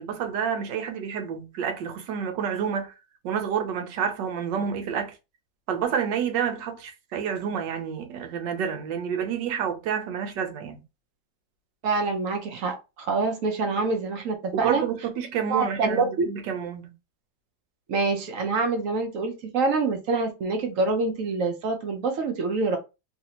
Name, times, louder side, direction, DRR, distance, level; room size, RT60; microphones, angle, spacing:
voice 1, 0.0-2.9 3.2-5.1 5.7-10.8 14.5-16.9, right 7 dB, 80° right, 1.3 m, -29 dB
voice 2, 11.8-14.8 15.5-16.3 17.9-22.8, right 3 dB, 65° right, 0.9 m, -26 dB
3.2 x 2.6 x 2.8 m
omnidirectional pair, 2.0 m